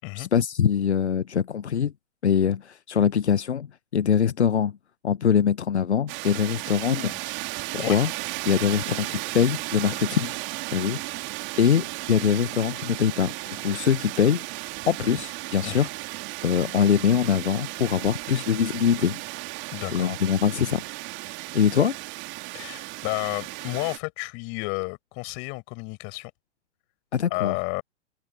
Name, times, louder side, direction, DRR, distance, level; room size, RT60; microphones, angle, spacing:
voice 1, 0.1-1.9 2.2-3.7 3.9-4.8 5.0-7.1 7.7-8.1 8.4-10.4 10.7-11.0 11.6-14.4 14.9-15.9 16.4-19.2 19.9-20.8 21.3-22.0 27.1-27.5, left 8 dB, 75° left, 1.0 m, -23 dB
sound 1, 6.1-24.0, right 24 dB, 35° right, 2.5 m, -35 dB
voice 2, 19.7-20.2 22.5-26.3 27.3-27.8, left 33 dB, 40° left, 6.1 m, -31 dB
figure-of-eight pair, 105°, 34 cm